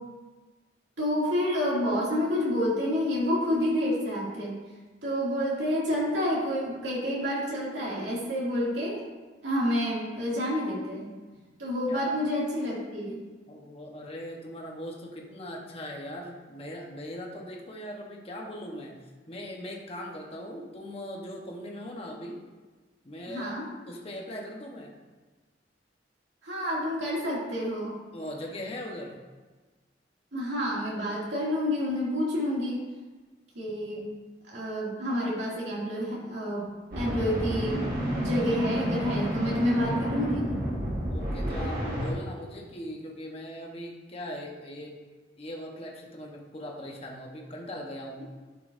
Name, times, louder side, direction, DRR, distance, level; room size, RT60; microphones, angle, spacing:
voice 1, 1.0-4.6 5.0-9.0 9.4-11.1 11.6-13.2 23.3-23.6 26.4-28.0 30.3-32.8 33.5-34.1 34.5-36.6 37.0-37.9 38.1-40.5, equal, 80° right, -6 dB, 2.5 m, -29 dB
voice 2, 13.5-19.0 19.3-22.4 23.0-24.9 28.1-29.2 34.0-34.1 38.4-38.6 39.2-39.6 41.1-45.0 45.4-48.2, equal, 35° left, -1 dB, 1.1 m, -40 dB
sound 1, 36.9-42.1, equal, 50° right, 1.7 m, -30 dB
11.0 x 5.6 x 2.7 m, 1.3 s
head